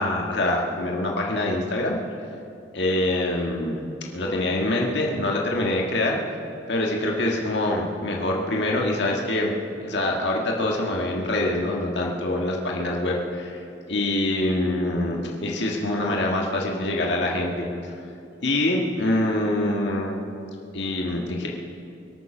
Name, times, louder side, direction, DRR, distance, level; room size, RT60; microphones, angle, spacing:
voice 1, 0.0-2.0 2.7-3.8 4.1-6.2 6.7-9.5 9.8-13.6 13.9-17.7 18.4-20.2 20.7-21.5, left 1 dB, 65° left, -1 dB, 1.6 m, -25 dB
24.0 x 8.8 x 5.9 m, 2.6 s
head